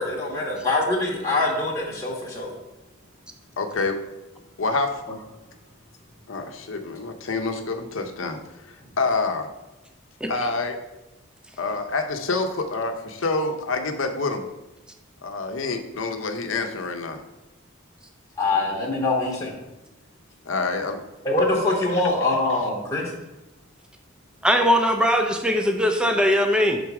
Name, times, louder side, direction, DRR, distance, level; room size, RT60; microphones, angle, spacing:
voice 1, 0.0-2.5 18.4-19.5 21.2-23.1, left 2 dB, 15° left, -4 dB, 0.9 m, -24 dB
voice 2, 3.6-4.0 4.6-4.9 6.3-8.4 9.0-9.5 10.3-10.8 11.6-14.4 15.2-17.2 20.5-21.0, left 3 dB, 70° left, 5 dB, 0.7 m, -27 dB
voice 3, 24.4-26.8, equal, 5° right, 4 dB, 0.5 m, -20 dB
5.9 x 4.0 x 4.7 m, 1.0 s
head